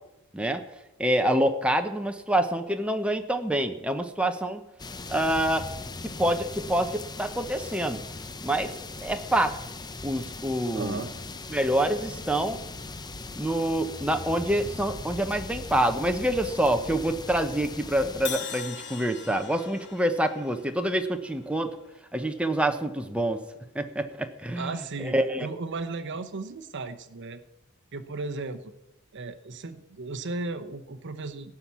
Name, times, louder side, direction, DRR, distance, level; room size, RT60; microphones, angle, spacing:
voice 1, 1.0-4.6 5.1-5.7 6.0-8.0 8.4-8.7 9.0-9.6 10.0-11.0 11.5-12.6 13.3-21.7 22.1-23.4 23.7-25.5, right 1 dB, 5° right, 6 dB, 0.9 m, -26 dB
sound 1, 4.8-18.3, left 3 dB, 20° left, 0.7 m, -39 dB
voice 2, 10.7-11.1 24.6-27.4 27.9-28.7 29.1-31.5, right 3 dB, 55° right, 9 dB, 0.9 m, -35 dB
Crash cymbal, 18.2-22.3, left 8 dB, 55° left, 1.4 m, -41 dB
17.0 x 5.8 x 8.3 m, 0.94 s
head